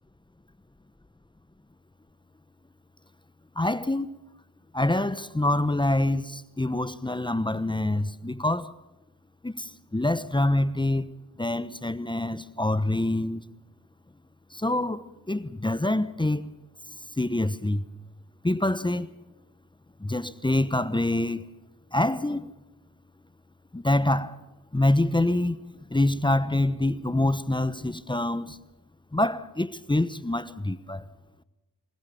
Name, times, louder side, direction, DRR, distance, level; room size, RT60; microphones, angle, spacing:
voice 1, 3.6-4.1 4.7-8.7 9.4-11.1 11.4-13.4 14.5-15.0 15.3-16.5 17.2-17.8 18.4-19.1 20.0-21.4 21.9-22.5 23.7-24.4 24.7-25.6 25.9-28.6 29.1-31.0, left 1 dB, 10° left, 1.0 m, -26 dB
23.5 x 20.5 x 7.0 m
hypercardioid pair, 40°, 40 cm